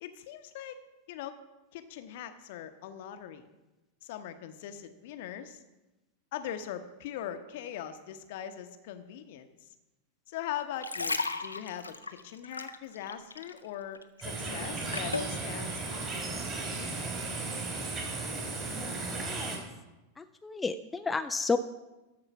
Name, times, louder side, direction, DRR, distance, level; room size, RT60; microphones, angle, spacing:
voice 1, 0.0-0.8 1.1-1.4 1.7-3.5 4.0-5.6 6.3-9.5 10.3-17.0, left 10 dB, 50° left, 10 dB, 0.8 m, -41 dB
sound 1, 10.6-13.7 13.9-15.4 16.0-16.1, left 3 dB, 80° left, 0.5 m, -35 dB
sound 2, 14.2-19.6, right 3 dB, 25° right, 2.6 m, -35 dB
voice 2, 18.7-19.6 20.2-21.6, left 4 dB, 10° left, 9 dB, 0.4 m, -33 dB
13.5 x 4.9 x 5.8 m, 1.0 s
figure-of-eight pair, 90°, 0 cm